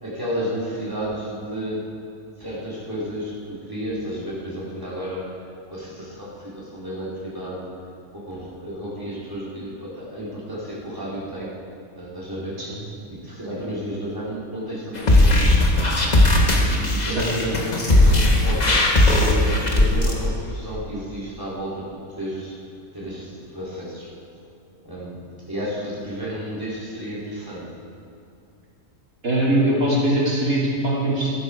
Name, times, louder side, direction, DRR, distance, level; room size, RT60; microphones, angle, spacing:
voice 1, 0.0-1.9 2.4-5.3 5.7-7.7 8.1-11.5 11.9-12.6 13.1-15.7 16.7-21.9 22.1-22.6 22.9-24.1 24.8-27.7, equal, 15° right, -8 dB, 3.4 m, -32 dB
sound 1, 15.0-20.1, left 1 dB, 30° left, 1.4 m, -17 dB
voice 2, 29.2-31.3, right 1 dB, 85° right, -5 dB, 3.1 m, -21 dB
13.0 x 13.0 x 4.9 m, 2.5 s
omnidirectional pair, 1.4 m